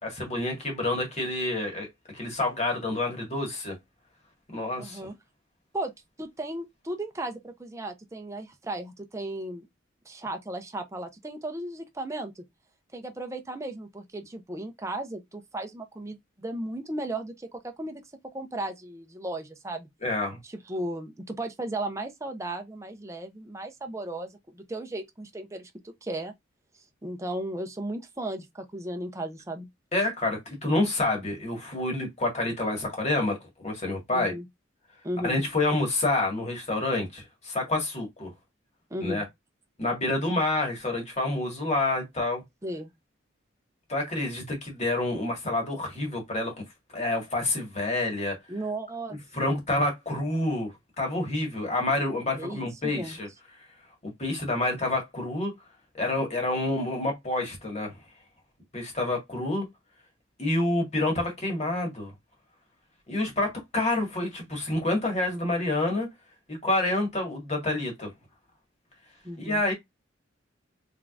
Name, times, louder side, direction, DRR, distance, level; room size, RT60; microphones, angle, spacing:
voice 1, 0.0-1.9 2.1-3.8 4.5-5.0 20.0-20.4 29.9-33.4 33.6-34.3 35.2-38.3 39.0-39.2 39.8-42.4 43.9-46.5 46.9-48.4 49.3-53.3 54.0-55.5 55.9-58.0 58.7-59.7 60.4-62.1 63.1-66.1 66.5-68.1 69.4-69.7, left 2 dB, 35° left, 1.7 m, -28 dB
voice 2, 4.8-5.1 5.7-5.9 6.2-9.7 10.1-12.4 12.9-18.0 18.3-19.9 20.4-26.3 27.0-29.7 34.1-34.5 35.0-35.4 38.9-39.3 42.6-42.9 48.5-49.2 52.4-53.2 69.2-69.6, right 1 dB, 15° right, 0.6 m, -35 dB
3.6 x 3.5 x 2.4 m
head